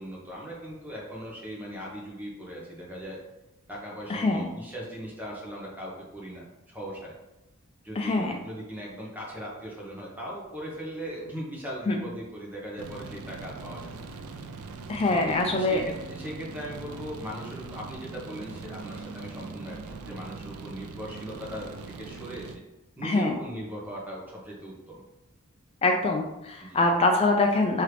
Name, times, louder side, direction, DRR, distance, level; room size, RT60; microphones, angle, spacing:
voice 1, 0.0-3.2 3.7-7.1 7.8-14.1 15.1-21.7 22.0-22.6 23.0-25.0 26.6-26.9, equal, 10° right, -4 dB, 1.0 m, -39 dB
voice 2, 4.1-4.5 8.0-8.4 11.9-12.0 14.9-15.8 23.0-23.3 25.8-27.8, left 2 dB, 25° left, 3 dB, 0.3 m, -24 dB
sound 1, 12.8-22.6, right 4 dB, 85° right, 0.4 m, -41 dB
3.7 x 3.2 x 3.3 m, 0.96 s
head